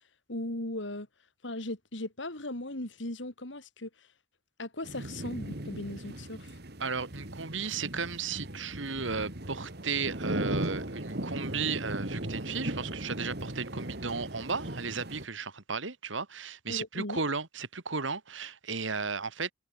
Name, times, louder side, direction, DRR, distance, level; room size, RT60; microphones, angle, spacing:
voice 1, 0.3-1.1 1.4-4.1 4.6-6.6 16.7-17.2, left 1 dB, 70° left, 3.4 m, -38 dB
sound 1, 4.8-15.3, right 1 dB, 55° right, 3.0 m, -37 dB
voice 2, 6.8-19.5, right 5 dB, 75° right, 2.1 m, -34 dB
head